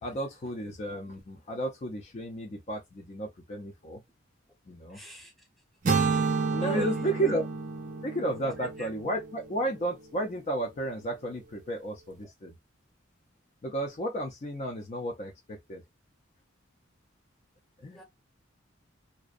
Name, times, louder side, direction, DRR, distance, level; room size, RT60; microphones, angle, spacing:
voice 1, 0.0-4.0 4.7-5.0 6.5-7.4 8.0-12.5 13.6-15.8 17.8-18.0, right 1 dB, 35° left, 0.4 m, -33 dB
voice 2, 4.9-5.3 6.1-6.2 6.6-7.1 8.8-8.9 17.9-18.0, left 1 dB, ahead, 0.7 m, -40 dB
sound 1, 5.8-9.9, right 4 dB, 40° right, 0.5 m, -30 dB
2.5 x 2.1 x 2.4 m
head